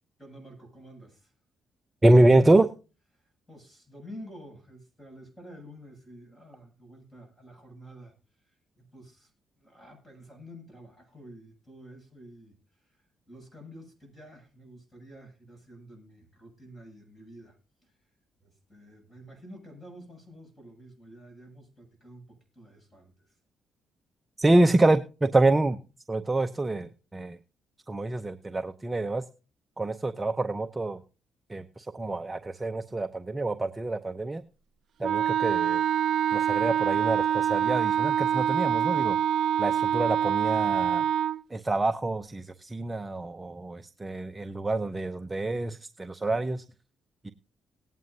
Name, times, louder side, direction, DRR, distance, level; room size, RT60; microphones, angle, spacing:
voice 1, 0.2-1.3 3.1-9.3 9.6-17.6 17.8-18.0 18.4-23.4, equal, 5° left, 1 dB, 7.7 m, -49 dB
voice 2, 2.0-2.7 24.4-25.8 26.1-27.4 27.9-29.2 29.8-31.0 31.5-34.4 35.0-35.8 36.3-39.2 39.6-41.0 41.5-46.6 47.2-47.3, right 2 dB, 20° right, 10 dB, 0.6 m, -26 dB
Wind instrument woodwind instrument, 35.0-41.4, right 9 dB, 65° right, 0.5 m, -25 dB
18.5 x 9.0 x 2.7 m, 0.34 s
cardioid pair, 90°, 0 cm